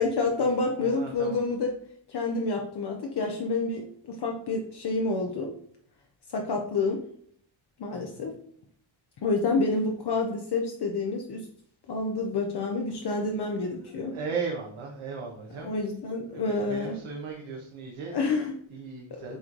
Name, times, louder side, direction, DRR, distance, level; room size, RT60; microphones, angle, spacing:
voice 1, 0.0-1.7 2.1-5.5 6.3-7.0 7.8-8.3 9.2-11.5 11.9-14.2 15.6-17.0 18.1-18.5 19.3-19.4, left 3 dB, 55° left, 1 dB, 0.8 m, -28 dB
voice 2, 0.7-1.4 7.9-8.3 13.0-13.1 13.7-15.7 16.3-19.4, right 5 dB, 80° right, 0 dB, 1.2 m, -37 dB
8.1 x 3.2 x 3.8 m, 0.62 s
wide cardioid pair, 155°, 48 cm